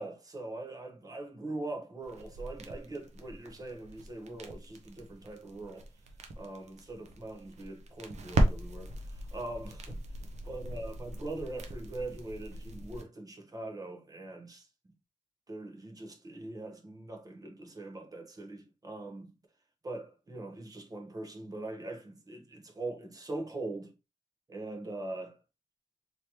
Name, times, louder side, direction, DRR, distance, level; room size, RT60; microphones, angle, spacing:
voice 1, 0.0-5.9 6.4-10.0 10.4-14.7 15.5-19.3 19.8-23.9 24.5-25.4, right 2 dB, 30° right, 0.8 m, -42 dB
sound 1, 2.0-13.0, right 1 dB, 65° right, 0.7 m, -37 dB
3.4 x 2.8 x 2.9 m
wide cardioid pair, 125°, 13 cm